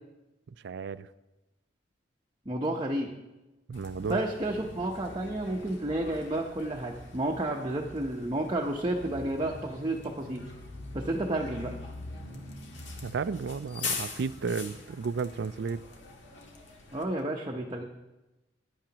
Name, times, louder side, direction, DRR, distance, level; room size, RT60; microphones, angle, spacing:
voice 1, 0.6-1.1 3.7-4.2 13.0-15.8, right 5 dB, 65° right, 15 dB, 0.4 m, -33 dB
voice 2, 2.5-3.1 4.1-10.4 10.9-11.7 16.9-17.8, right 1 dB, 25° right, 0 dB, 0.7 m, -31 dB
Bus, 3.7-17.0, left 3 dB, 75° left, 1.6 m, -42 dB
15.0 x 10.0 x 2.9 m, 1.0 s
head